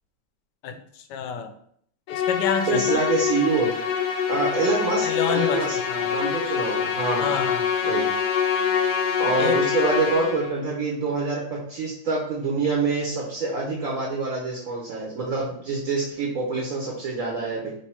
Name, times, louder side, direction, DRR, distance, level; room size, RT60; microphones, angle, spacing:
voice 1, 0.6-1.5 2.1-3.0 5.0-6.2 7.2-7.7 9.4-9.6, left 7 dB, 90° left, 8 dB, 1.2 m, -29 dB
Musical instrument, 2.1-10.6, left 7 dB, 70° left, 1.0 m, -25 dB
voice 2, 2.7-3.7 4.3-5.8 6.1-7.3 7.8-8.1 9.2-17.7, right 4 dB, 55° right, -3 dB, 1.2 m, -26 dB
3.4 x 3.2 x 4.2 m, 0.65 s
omnidirectional pair, 1.8 m